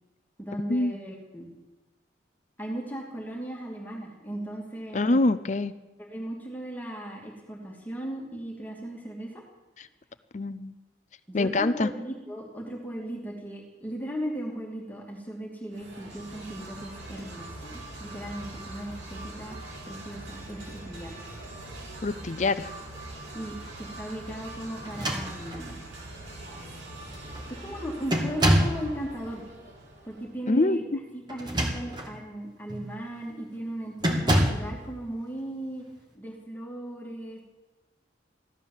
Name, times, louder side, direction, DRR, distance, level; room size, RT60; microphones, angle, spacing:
voice 1, 0.4-1.5 2.6-5.2 6.0-9.4 11.3-19.6 19.9-21.2 23.3-25.8 27.5-29.4 30.0-30.8 31.1-35.9 36.1-37.4, right 1 dB, 10° left, -2 dB, 2.5 m, -37 dB
voice 2, 4.9-5.7 9.8-9.9 10.3-10.7 11.3-11.9 22.0-22.7 30.5-31.0, left 2 dB, 40° left, 13 dB, 0.5 m, -25 dB
sound 1, 15.7-30.4, right 2 dB, 75° right, 5.1 m, -42 dB
sound 2, 24.8-25.8 26.6-26.7 27.1-27.4 28.1-28.9 31.3-32.1 32.7-32.9 34.0-34.7, equal, 20° right, 2.0 m, -26 dB
15.5 x 12.5 x 7.3 m, 1.2 s
head